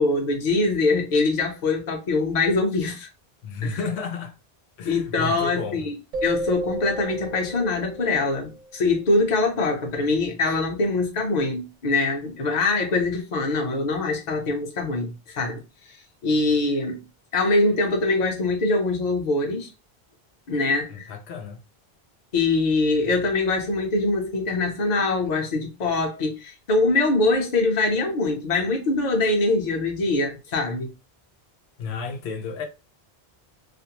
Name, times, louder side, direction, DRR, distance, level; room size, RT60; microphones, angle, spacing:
voice 1, 0.0-3.1 3.6-3.8 4.8-5.9 6.2-15.6 16.2-17.0 17.3-19.7 20.5-21.1 22.3-30.9, left 3 dB, 45° left, 0.7 m, -23 dB
voice 2, 3.4-4.3 4.8-5.9 20.9-21.6 31.8-32.6, left 4 dB, 90° left, 0.8 m, -32 dB
sound 1, 6.1-8.8, right 1 dB, 55° right, 0.4 m, -32 dB
2.5 x 2.0 x 2.8 m
omnidirectional pair, 1.1 m